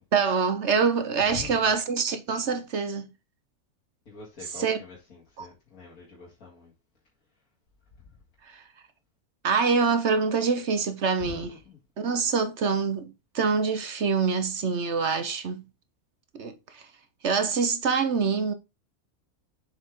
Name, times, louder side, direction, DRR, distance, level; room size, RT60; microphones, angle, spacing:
voice 1, 0.1-3.1 4.6-4.8 5.4-5.5 9.4-11.5 12.0-15.6 16.3-16.5 17.2-18.5, right 5 dB, 50° right, 1.2 m, -25 dB
voice 2, 1.2-1.7 4.1-6.7 8.0-8.2 11.2-11.8, left 6 dB, 70° left, 2.7 m, -44 dB
7.1 x 5.4 x 3.7 m
omnidirectional pair, 1.6 m